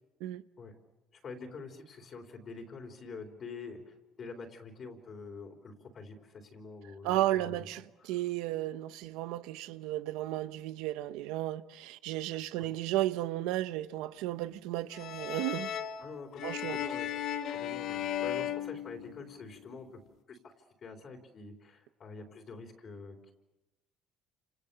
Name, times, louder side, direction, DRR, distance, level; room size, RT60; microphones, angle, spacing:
voice 1, 1.1-7.7 8.0-8.2 12.3-12.7 16.0-17.2 17.5-19.9 20.3-20.5 20.8-23.3, left 4 dB, 35° left, 3.8 m, -46 dB
voice 2, 7.0-15.7 16.4-16.8, right 15 dB, 90° right, 1.1 m, -34 dB
sound 1, 14.9-19.5, left 10 dB, 60° left, 1.9 m, -36 dB
30.0 x 28.5 x 7.0 m
cardioid pair, 140°, 0 cm